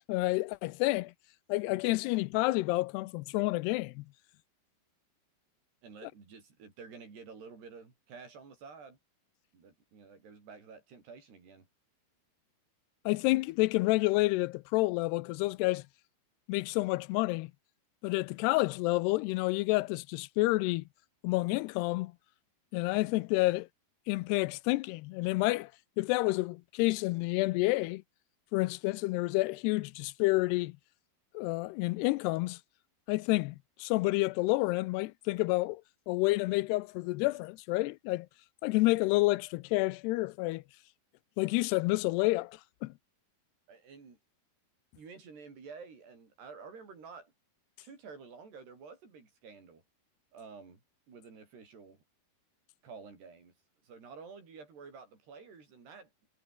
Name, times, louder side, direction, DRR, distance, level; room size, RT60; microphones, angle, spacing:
voice 1, 0.1-1.1 1.5-4.1 13.1-15.8 16.5-17.5 18.0-20.8 21.2-22.1 22.7-23.7 24.1-25.7 26.0-28.0 28.5-30.8 31.3-32.6 33.1-35.8 36.1-38.3 38.6-40.6 41.4-42.9, left 21 dB, 85° left, 2.7 m, -29 dB
voice 2, 5.8-9.0 9.5-11.7 43.7-44.2 45.0-47.3 47.8-49.8 50.3-52.0 52.8-53.5 53.8-56.1, right 5 dB, 75° right, 8.4 m, -50 dB
omnidirectional pair, 4.8 m